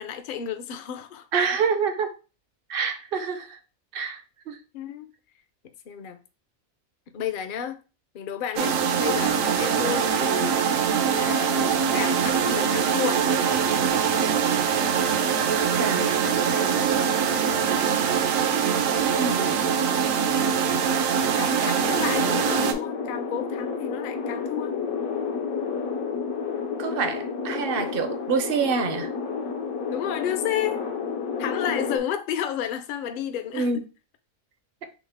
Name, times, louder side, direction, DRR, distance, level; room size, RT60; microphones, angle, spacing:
voice 1, 0.0-1.5 4.0-4.1 4.7-5.1 5.9-6.2 7.1-7.8 8.1-10.6 11.1-13.3 20.8-24.8 29.9-30.8 31.4-33.7, left 9 dB, 60° left, 0.5 m, -32 dB
voice 2, 1.3-2.1 2.7-3.6 3.9-4.6 15.8-17.2 19.0-19.8 26.8-29.1 33.5-33.8, right 5 dB, 55° right, 0.7 m, -27 dB
sound 1, 8.6-22.7, right 7 dB, 75° right, 1.0 m, -23 dB
sound 2, 21.8-32.0, left 5 dB, 80° left, 1.2 m, -30 dB
6.2 x 2.1 x 3.4 m
omnidirectional pair, 1.4 m